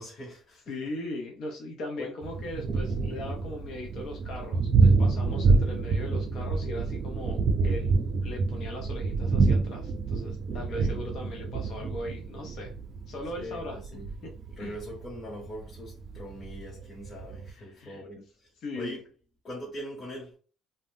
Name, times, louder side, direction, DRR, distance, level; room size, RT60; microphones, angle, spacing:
voice 1, 0.0-0.6 2.0-2.1 10.5-10.9 13.4-14.1 14.6-19.0 19.4-20.3, equal, 35° left, 1.0 m, -42 dB
voice 2, 0.7-7.9 8.2-12.7 13.1-14.3 14.6-14.8 17.6-18.2 18.6-19.0, left 1 dB, 65° left, 0.6 m, -39 dB
Thunder, 2.2-17.5, right 4 dB, 50° right, 0.5 m, -27 dB
2.5 x 2.1 x 3.5 m
cardioid pair, 100°, 0 cm